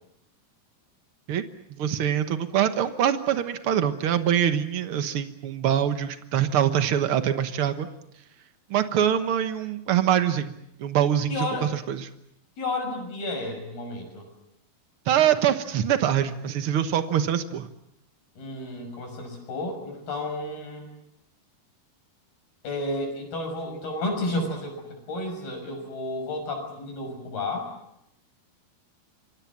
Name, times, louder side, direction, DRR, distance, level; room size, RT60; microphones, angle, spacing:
voice 1, 1.7-7.9 8.7-10.5 10.8-12.1 15.1-17.7, right 10 dB, 75° right, 9 dB, 1.2 m, -24 dB
voice 2, 11.3-11.7 12.6-14.3 18.4-20.9 22.6-27.7, left 2 dB, 80° left, 4 dB, 8.1 m, -32 dB
27.5 x 24.0 x 7.3 m, 0.80 s
omnidirectional pair, 4.3 m